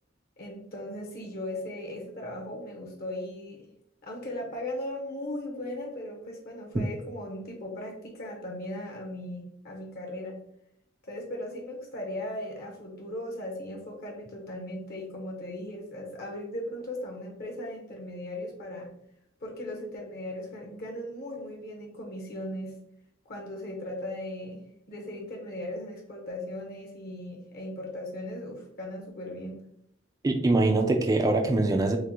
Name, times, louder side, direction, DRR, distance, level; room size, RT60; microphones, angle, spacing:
voice 1, 0.4-3.7 4.0-10.4 11.0-18.9 19.4-22.8 23.2-24.6 24.9-29.6, left 1 dB, 50° left, 1 dB, 0.8 m, -38 dB
voice 2, 30.2-32.0, right 2 dB, 20° right, 4 dB, 0.3 m, -23 dB
5.8 x 2.0 x 2.8 m, 0.75 s
head